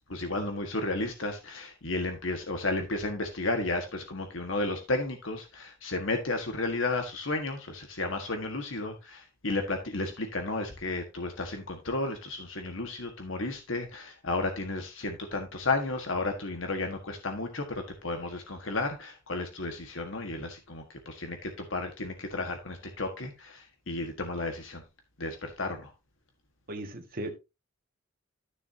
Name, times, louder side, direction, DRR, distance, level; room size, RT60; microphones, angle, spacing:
voice 1, 0.1-24.8 25.2-25.9, left 2 dB, 70° left, 1.6 m, -33 dB
voice 2, 26.7-27.3, right 1 dB, 50° right, 1.8 m, -36 dB
13.0 x 6.8 x 2.8 m
head